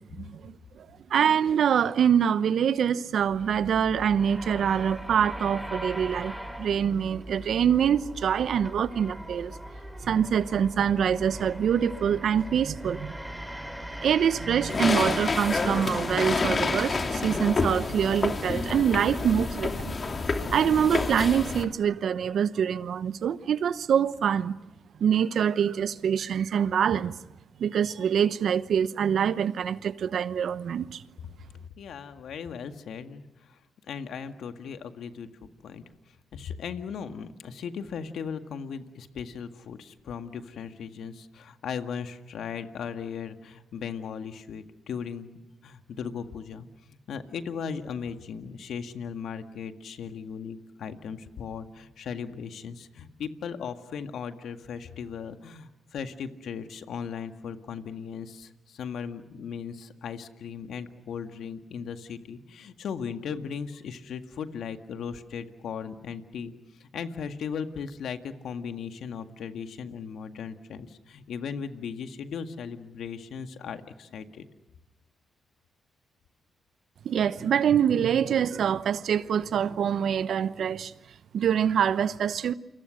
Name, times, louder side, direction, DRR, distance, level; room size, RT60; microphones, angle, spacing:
voice 1, 0.1-6.3 6.6-9.5 10.0-13.4 14.0-19.9 20.5-24.5 25.0-27.1 27.6-31.0 77.0-80.9 81.3-82.5, right 8 dB, 70° right, 0.9 m, -25 dB
sound 1, 3.2-19.5, equal, 5° right, 5.6 m, -40 dB
sound 2, 14.7-21.6, left 3 dB, 45° left, 2.9 m, -28 dB
voice 2, 31.8-33.6 33.9-35.3 35.6-35.8 36.3-45.3 45.6-66.5 66.8-74.5, left 6 dB, 75° left, 1.8 m, -37 dB
29.5 x 24.5 x 6.5 m
supercardioid pair, 50°, 0 cm